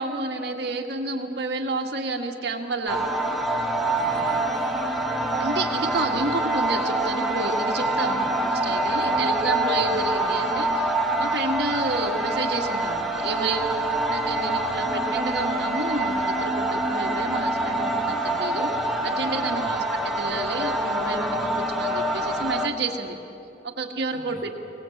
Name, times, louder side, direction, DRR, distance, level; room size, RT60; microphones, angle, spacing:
voice 1, 0.0-3.0 5.4-10.9 11.2-13.6 14.1-23.2 23.6-24.5, right 3 dB, 65° right, 3 dB, 1.8 m, -30 dB
sound 1, 2.9-22.7, right 1 dB, ahead, 1.4 m, -25 dB
voice 2, 3.8-4.9 8.1-8.2 9.0-9.3 9.8-9.9 19.6-19.7 24.1-24.4, left 1 dB, 55° left, 1 dB, 3.3 m, -45 dB
23.5 x 19.0 x 7.9 m, 2.9 s
head